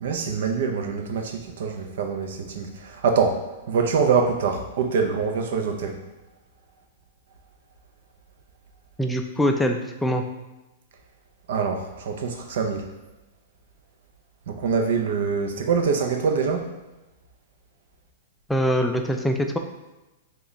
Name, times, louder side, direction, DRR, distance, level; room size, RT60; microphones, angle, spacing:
voice 1, 0.0-3.4 3.7-6.0 11.5-12.8 14.5-16.7, right 5 dB, 70° right, 4 dB, 0.5 m, -24 dB
voice 2, 9.0-10.2 18.5-19.6, equal, 5° left, 4 dB, 0.3 m, -23 dB
3.0 x 2.3 x 3.8 m, 1.0 s
hypercardioid pair, 140°, 0 cm